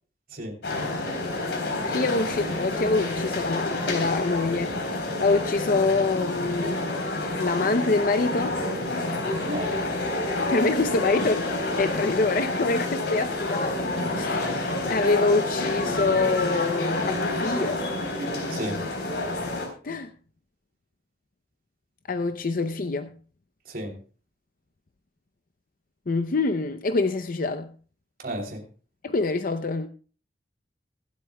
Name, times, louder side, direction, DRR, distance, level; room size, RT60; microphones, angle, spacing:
sound 1, 0.6-19.7, left 2 dB, 80° left, 3.7 m, -28 dB
voice 1, 1.9-6.9 7.4-8.6 10.5-11.5 11.8-13.9 14.1-17.8 19.8-20.1 22.1-23.1 26.1-27.7 29.0-29.9, left 3 dB, 50° left, 0.6 m, -25 dB
voice 2, 28.2-28.6, equal, 55° right, 3.1 m, -32 dB
24.5 x 8.3 x 2.2 m
head